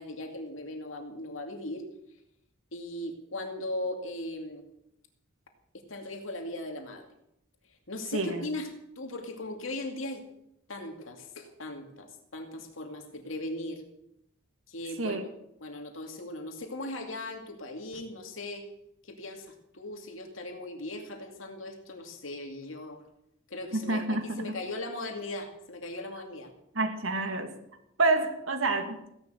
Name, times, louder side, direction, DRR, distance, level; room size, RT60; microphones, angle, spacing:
voice 1, 0.0-1.8 2.7-4.6 5.7-7.1 7.9-8.7 9.0-10.2 10.7-13.8 14.7-15.2 15.6-18.7 19.0-23.0 23.5-26.5, left 1 dB, 80° left, 4 dB, 2.4 m, -38 dB
voice 2, 8.1-8.5 15.0-15.2 23.7-24.6 26.7-27.5 28.0-29.0, right 2 dB, 80° right, 5 dB, 2.6 m, -28 dB
16.0 x 11.5 x 7.8 m, 0.79 s
head